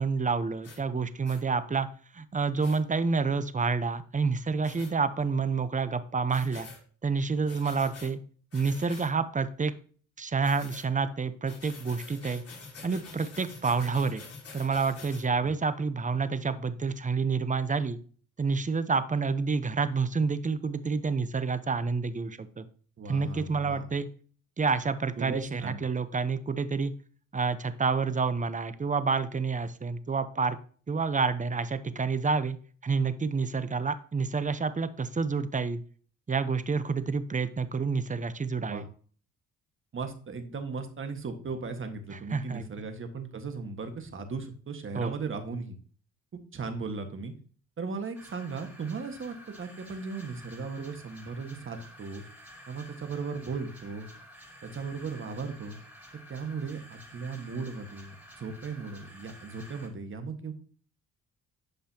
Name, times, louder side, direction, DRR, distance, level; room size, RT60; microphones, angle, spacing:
voice 1, 0.0-1.9 2.1-6.7 7.0-8.2 8.5-9.7 10.2-12.4 12.8-14.2 14.5-18.0 18.4-22.7 23.1-24.1 24.6-26.9 27.3-30.6 30.9-32.6 32.8-35.8 36.3-38.8 42.1-42.8 44.9-45.1, right 4 dB, 25° right, 12 dB, 0.8 m, -28 dB
sound 1, 0.6-0.8 1.2-1.4 2.6-2.8 4.6-4.9 6.3-6.8 7.5-8.1 8.5-9.1 10.4-10.9 11.4-15.2, left 4 dB, 50° left, 3.6 m, -47 dB
voice 2, 23.0-23.9 25.2-25.8 38.7-38.9 39.9-45.7 46.5-47.3 47.8-52.2 52.7-54.1 54.6-55.8 56.3-60.5, right 4 dB, 40° right, 6 dB, 1.7 m, -37 dB
sound 2, 48.1-59.9, equal, 5° right, 3.6 m, -51 dB
11.5 x 5.4 x 2.9 m, 0.44 s
cardioid pair, 90°, 30 cm